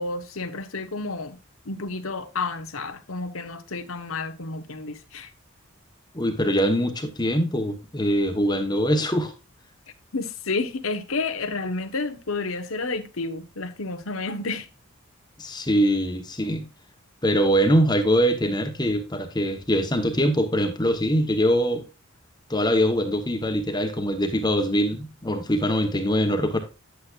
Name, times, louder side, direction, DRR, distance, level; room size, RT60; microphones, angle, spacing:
voice 1, 0.0-1.4 1.6-5.3 10.1-14.7, left 3 dB, 75° left, 1.1 m, -30 dB
voice 2, 6.1-9.3 15.4-16.6 17.2-21.8 22.5-26.6, equal, 20° left, 1.1 m, -23 dB
9.5 x 8.3 x 2.5 m
head